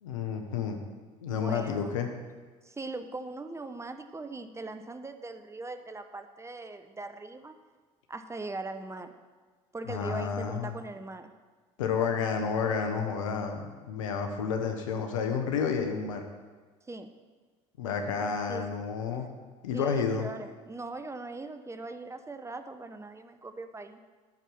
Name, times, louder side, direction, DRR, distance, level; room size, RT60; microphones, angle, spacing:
voice 1, 0.0-0.8 1.2-2.1 9.9-10.7 11.8-16.2 17.8-19.3 19.6-20.3, left 6 dB, 85° left, 4 dB, 1.1 m, -30 dB
voice 2, 1.3-2.0 2.6-7.5 8.1-9.1 9.7-11.3 16.9-17.1 18.5-18.8 19.7-24.0, right 3 dB, 15° right, 9 dB, 0.8 m, -40 dB
11.5 x 4.6 x 7.0 m, 1.4 s
hypercardioid pair, 70°, 16 cm